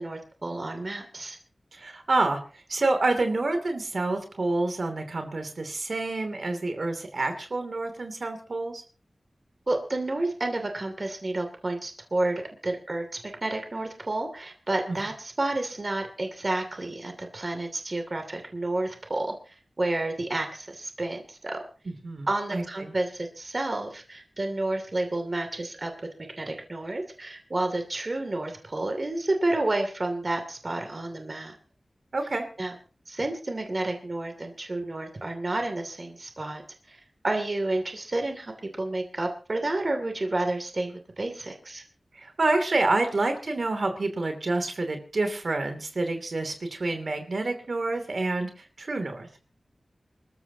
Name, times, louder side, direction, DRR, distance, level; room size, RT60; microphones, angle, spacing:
voice 1, 0.0-1.4 9.7-21.6 22.3-25.9 26.4-31.6 32.6-32.7 33.1-36.6 36.9-41.8, right 2 dB, 40° right, 5 dB, 2.7 m, -30 dB
voice 2, 1.7-8.8 14.9-15.0 21.9-22.9 32.1-32.5 42.1-49.3, right 2 dB, 65° right, 6 dB, 2.9 m, -28 dB
27.0 x 14.0 x 2.9 m, 0.36 s
wide cardioid pair, 90°, 0 cm